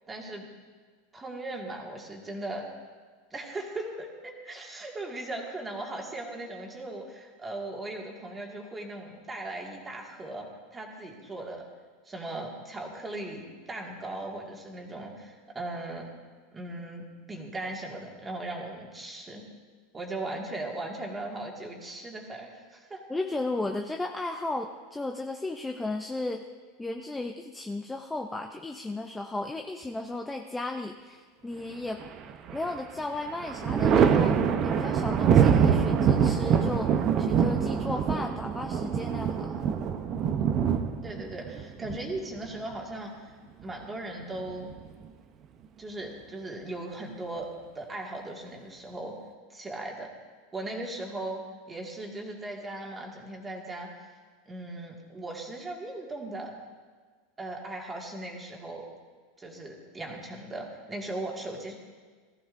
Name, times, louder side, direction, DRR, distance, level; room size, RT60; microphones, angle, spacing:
voice 1, 0.1-0.5 1.1-2.7 3.3-11.6 12.1-16.1 16.5-19.4 19.9-23.1 40.3-43.3 43.6-44.7 45.8-49.2 49.5-50.1 50.5-51.4 51.7-53.9 54.5-56.5 57.4-58.9 59.4-61.7, right 2 dB, 15° right, 0 dB, 1.9 m, -38 dB
voice 2, 23.1-26.4 26.8-32.0 32.5-39.6, left 2 dB, 10° left, 3 dB, 0.5 m, -34 dB
Thunder, 32.0-32.8 33.1-42.7 44.2-45.1, right 7 dB, 35° right, 0.7 m, -25 dB
19.0 x 14.0 x 2.6 m, 1.5 s
supercardioid pair, 150°, 0 cm